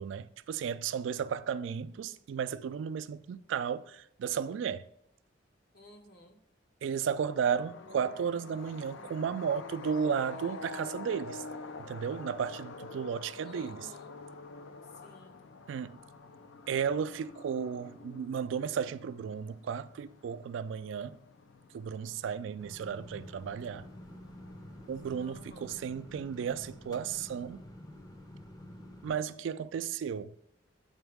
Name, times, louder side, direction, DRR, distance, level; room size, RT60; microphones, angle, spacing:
voice 1, 0.0-4.8 6.8-11.4 11.8-13.9 15.7-16.0 16.7-21.2 21.7-23.8 24.9-27.6 29.0-30.3, right 7 dB, 80° right, 0.3 m, -34 dB
voice 2, 5.7-6.4 13.4-14.1 14.8-15.4 25.2-25.8, left 1 dB, 55° left, 0.8 m, -54 dB
sound 1, 7.1-25.8, left 3 dB, 80° left, 0.5 m, -48 dB
sound 2, 22.6-29.2, left 1 dB, 20° left, 0.5 m, -49 dB
8.1 x 3.9 x 3.4 m
head